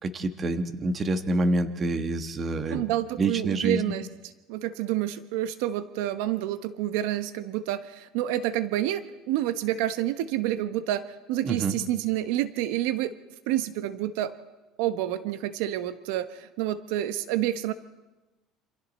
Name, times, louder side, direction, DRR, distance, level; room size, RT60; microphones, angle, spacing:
voice 1, 0.0-2.8 3.2-3.8 11.4-11.7, right 2 dB, 25° right, 9 dB, 1.4 m, -27 dB
voice 2, 2.7-13.1 13.5-14.3 14.8-17.7, right 13 dB, 80° right, 12 dB, 1.0 m, -29 dB
27.5 x 26.5 x 4.2 m, 1.1 s
cardioid pair, 150°, 0 cm